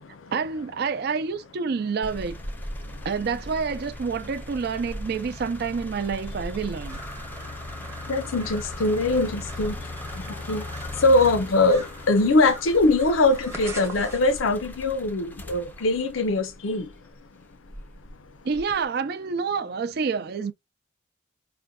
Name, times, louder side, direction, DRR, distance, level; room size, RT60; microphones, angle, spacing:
voice 1, 0.3-2.4 3.0-7.0 18.4-20.5, right 5 dB, 55° right, 0.4 m, -28 dB
sound 1, 2.0-17.1 17.6-18.9, left 1 dB, 10° left, 0.4 m, -38 dB
sound 2, 6.9-14.4, right 1 dB, 15° right, 0.8 m, -42 dB
voice 2, 8.1-9.7 10.5-10.6 11.0-16.8, left 2 dB, 90° left, 0.6 m, -22 dB
4.9 x 2.1 x 2.3 m
head